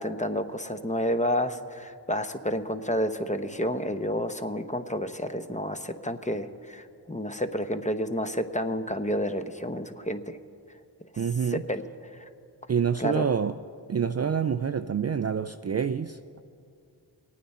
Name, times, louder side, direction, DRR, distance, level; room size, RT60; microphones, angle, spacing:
voice 1, 0.0-10.4 11.5-11.8 12.2-12.3 13.0-13.3, equal, 15° left, 9 dB, 0.8 m, -30 dB
voice 2, 11.2-11.6 12.7-13.6 13.9-16.4, right 7 dB, 35° right, 11 dB, 0.4 m, -27 dB
24.0 x 9.2 x 4.3 m, 2.4 s
cardioid pair, 40°, 45 cm